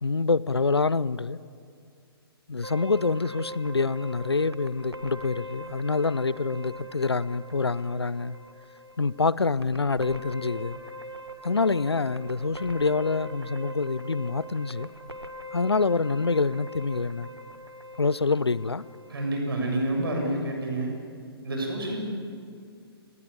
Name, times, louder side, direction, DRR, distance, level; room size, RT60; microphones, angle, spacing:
voice 1, 0.0-1.4 2.5-8.4 9.0-10.8 11.4-14.9 15.5-17.3 18.0-18.8, left 4 dB, 80° left, 0.6 m, -26 dB
sound 1, 2.6-19.7, equal, 90° right, 1.8 m, -42 dB
voice 2, 19.1-20.9 21.4-22.0, right 1 dB, 60° right, 7.4 m, -28 dB
29.5 x 19.5 x 8.4 m
figure-of-eight pair, 120°, 13 cm